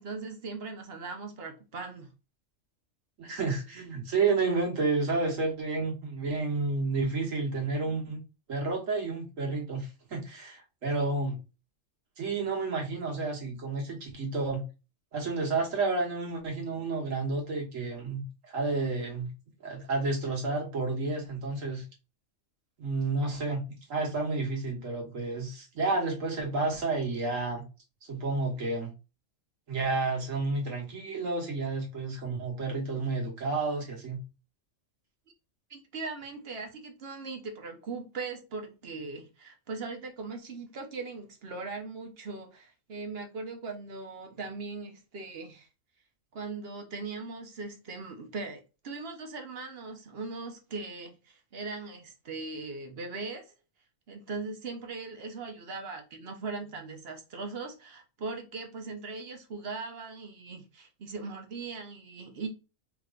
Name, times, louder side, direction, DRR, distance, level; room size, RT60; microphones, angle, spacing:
voice 1, 0.0-2.1 35.7-45.7 46.3-53.5 54.1-62.5, right 3 dB, 55° right, 1.0 m, -39 dB
voice 2, 3.2-8.2 8.5-11.4 12.2-14.6 15.1-19.3 19.6-21.8 22.8-27.6 28.1-28.9 29.7-34.2, right 3 dB, 80° right, 1.7 m, -30 dB
4.6 x 3.0 x 2.4 m
omnidirectional pair, 1.3 m